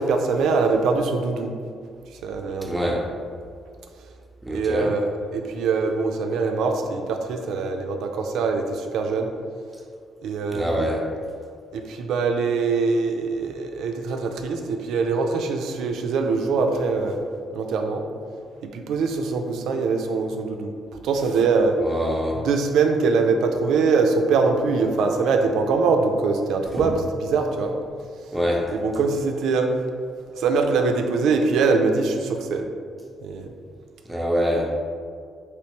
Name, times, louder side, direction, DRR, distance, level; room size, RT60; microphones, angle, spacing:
voice 1, 0.0-1.5 2.2-2.9 4.5-9.3 10.2-10.9 11.7-17.2 17.5-18.0 18.6-20.7 21.0-21.8 22.3-27.7 28.7-29.7 30.4-32.7 33.2-33.5, right 4 dB, 80° right, 4 dB, 0.3 m, -23 dB
voice 2, 2.6-3.0 4.5-4.9 10.5-11.0 21.8-22.4 26.8-26.9 28.3-28.6 34.1-34.7, equal, 5° right, -2 dB, 0.6 m, -24 dB
3.2 x 3.0 x 2.9 m, 2.2 s
cardioid pair, 90°, 0 cm